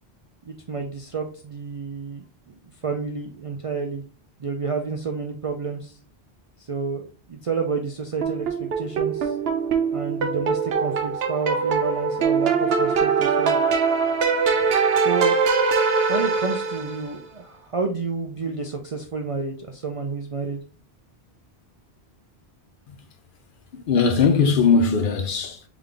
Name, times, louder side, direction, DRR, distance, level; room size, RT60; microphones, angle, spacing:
voice 1, 0.5-2.5 2.8-4.0 4.4-6.0 6.6-9.4 9.9-13.6 15.0-15.4 16.1-20.6, right 5 dB, 50° right, 0.4 m, -30 dB
sound 1, 8.2-17.1, right 5 dB, 70° right, 0.9 m, -22 dB
voice 2, 23.7-25.6, left 5 dB, 60° left, 0.7 m, -20 dB
3.7 x 3.6 x 3.3 m
omnidirectional pair, 1.1 m